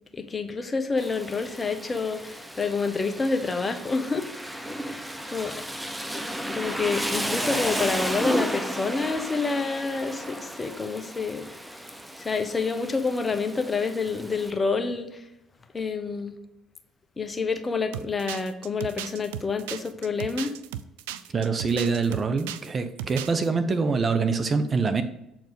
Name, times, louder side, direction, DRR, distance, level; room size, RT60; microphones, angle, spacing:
voice 1, 0.1-4.3 4.9-5.6 6.5-11.6 12.2-15.2 15.7-16.4 17.2-20.5, left 4 dB, 30° left, 7 dB, 1.1 m, -28 dB
Rain, 1.0-14.5, equal, 10° right, 0.8 m, -33 dB
sound 1, 17.9-22.7 23.0-23.5, right 12 dB, 80° right, 0.3 m, -36 dB
voice 2, 21.3-25.0, right 4 dB, 40° right, 9 dB, 0.8 m, -25 dB
7.7 x 4.5 x 5.4 m, 0.85 s
hypercardioid pair, 55°, 0 cm